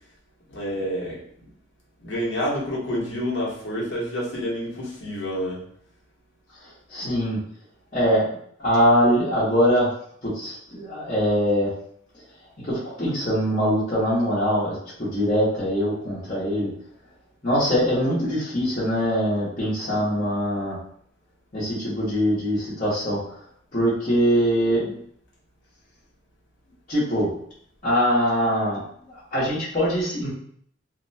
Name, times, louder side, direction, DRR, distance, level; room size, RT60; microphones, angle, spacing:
voice 1, 0.5-1.2 2.0-5.6, equal, 70° left, -5 dB, 1.0 m, -28 dB
voice 2, 6.9-7.4 7.9-9.9 10.2-11.7 12.6-16.7 17.4-20.8 21.5-23.2 23.7-25.0 26.9-27.3 27.8-28.8 29.1-30.3, equal, 40° left, -12 dB, 1.0 m, -22 dB
2.8 x 2.1 x 2.7 m, 0.64 s
head